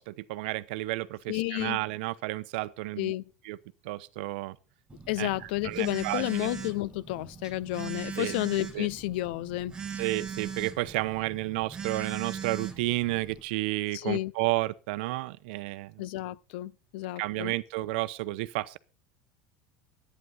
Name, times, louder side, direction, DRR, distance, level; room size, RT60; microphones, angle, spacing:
voice 1, 0.0-3.1 3.4-3.6 3.8-4.6 5.2-5.3 5.6-6.5 8.2-8.3 8.7-8.9 10.0-15.9 17.2-18.8, right 19 dB, 75° right, 0.7 m, -31 dB
voice 2, 1.3-1.8 3.0-3.2 5.1-9.8 13.9-14.3 16.0-17.5, left 18 dB, 80° left, 0.5 m, -31 dB
Telephone, 4.9-13.4, right 6 dB, 15° right, 1.6 m, -40 dB
11.0 x 9.3 x 5.5 m
supercardioid pair, 140°, 5 cm